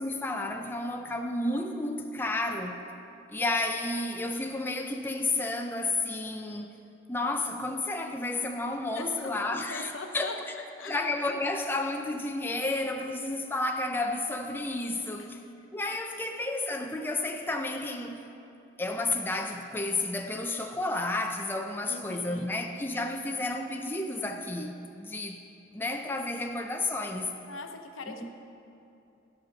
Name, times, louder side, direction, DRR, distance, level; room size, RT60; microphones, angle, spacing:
voice 1, 0.0-2.8 3.3-6.7 7.1-10.3 10.8-15.4 15.7-18.2 18.8-25.4 25.7-27.3 28.1-28.3, left 2 dB, 10° left, 0.4 m, -31 dB
voice 2, 9.0-10.4 10.8-11.0 16.2-16.3 21.9-22.5 23.2-23.5 27.5-28.3, left 3 dB, 90° left, 0.7 m, -42 dB
13.5 x 5.4 x 5.2 m
head